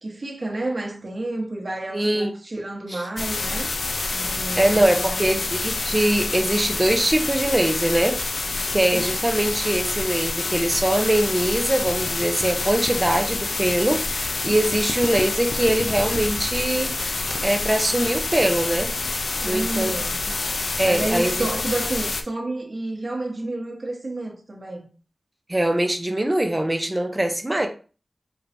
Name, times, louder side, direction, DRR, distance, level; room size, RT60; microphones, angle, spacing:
voice 1, 0.0-3.7 4.1-5.3 8.9-9.1 19.4-20.1 20.6-24.9, right 2 dB, 45° right, 1.2 m, -30 dB
voice 2, 1.9-2.3 4.6-8.2 8.7-16.9 17.4-18.9 19.4-19.9 20.8-21.5 25.5-27.7, right 1 dB, 20° right, 0.7 m, -22 dB
sound 1, 3.2-22.2, left 3 dB, 70° left, 0.5 m, -27 dB
4.5 x 3.2 x 2.6 m
wide cardioid pair, 100°, 0 cm